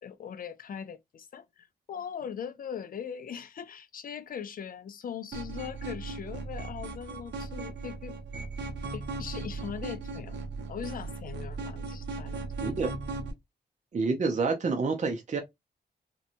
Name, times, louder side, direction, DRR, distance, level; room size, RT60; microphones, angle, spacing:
voice 1, 0.0-8.2 8.8-10.4 10.7-12.8, left 8 dB, 55° left, 0.4 m, -40 dB
sound 1, 5.3-13.3, right 3 dB, 85° right, 0.7 m, -37 dB
voice 2, 12.6-12.9 13.9-15.4, right 4 dB, 45° right, 0.5 m, -28 dB
2.8 x 2.2 x 2.5 m
wide cardioid pair, 100°, 17 cm